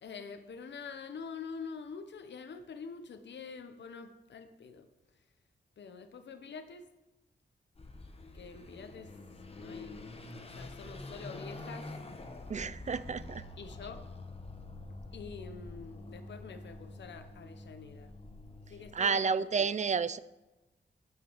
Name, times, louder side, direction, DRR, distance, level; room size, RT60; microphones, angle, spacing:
voice 1, 0.0-4.9 5.8-6.9 8.3-9.1 9.6-10.1 10.4-11.9 13.6-14.1 15.1-18.1 18.7-19.3 19.6-19.7, left 5 dB, 75° left, 8 dB, 0.8 m, -46 dB
Car passing by / Accelerating revving vroom, 7.7-19.0, left 2 dB, 30° left, 1.1 m, -46 dB
voice 2, 12.5-13.4 18.9-20.2, right 5 dB, 40° right, 17 dB, 0.4 m, -30 dB
9.2 x 6.2 x 6.0 m, 1.0 s
wide cardioid pair, 90°, 19 cm